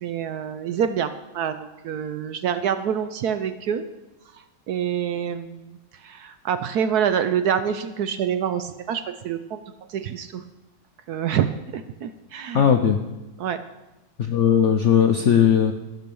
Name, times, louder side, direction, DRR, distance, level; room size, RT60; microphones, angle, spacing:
voice 1, 0.0-3.8 4.7-5.8 6.0-9.6 9.9-10.4 11.1-12.7 13.4-13.6, right 8 dB, 70° right, 10 dB, 1.0 m, -26 dB
voice 2, 12.5-13.0 14.2-15.7, left 8 dB, 70° left, 5 dB, 0.7 m, -18 dB
13.5 x 6.3 x 6.9 m, 1.0 s
omnidirectional pair, 2.0 m